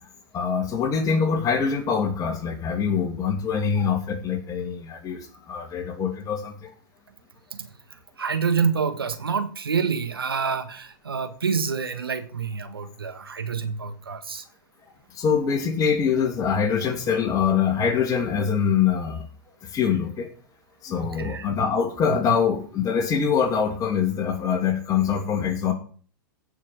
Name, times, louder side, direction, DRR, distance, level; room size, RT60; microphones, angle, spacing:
voice 1, 0.3-6.7 15.1-19.3 19.6-20.3 20.8-25.7, left 6 dB, 30° left, 5 dB, 2.7 m, -24 dB
voice 2, 8.2-14.4 21.0-21.5, right 6 dB, 85° right, 8 dB, 1.6 m, -27 dB
16.0 x 5.9 x 5.0 m, 0.43 s
hypercardioid pair, 105°, 12 cm